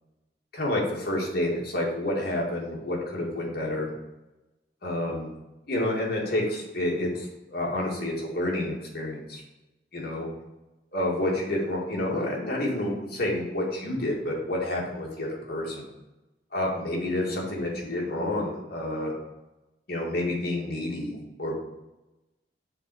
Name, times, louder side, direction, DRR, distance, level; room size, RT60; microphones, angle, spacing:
voice 1, 0.5-3.9 4.8-5.3 5.7-9.4 9.9-10.3 10.9-15.9 16.5-19.1 19.9-21.6, left 1 dB, 60° left, -3 dB, 2.0 m, -29 dB
7.2 x 3.9 x 4.8 m, 1.0 s
head